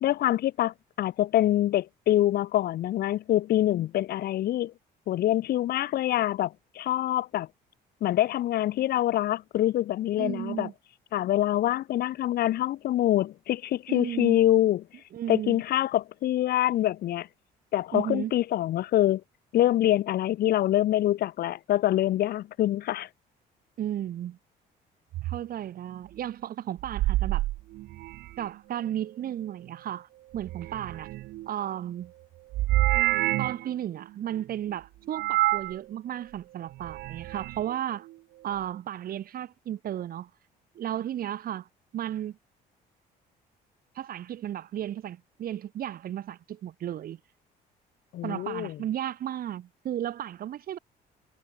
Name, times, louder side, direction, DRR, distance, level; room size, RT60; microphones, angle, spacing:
voice 1, 0.0-4.7 5.1-7.5 8.0-10.7 11.1-14.8 15.3-17.3 17.7-19.2 19.5-23.1 48.1-48.7, left 13 dB, 65° left, 2.0 m, -25 dB
voice 2, 10.2-10.7 13.9-14.4 15.1-15.6 17.9-18.3 23.8-24.4 25.2-27.4 28.4-31.1 31.5-32.1 33.4-38.1 38.4-40.3 40.7-41.7 41.9-42.4 43.9-47.2 48.2-50.8, right 11 dB, 60° right, 6.5 m, -34 dB
sound 1, 25.1-25.4 26.8-28.5 30.3-31.5 32.5-33.7 35.1-35.8 36.7-37.6, right 17 dB, 80° right, 1.5 m, -28 dB
cardioid pair, 110°, 17 cm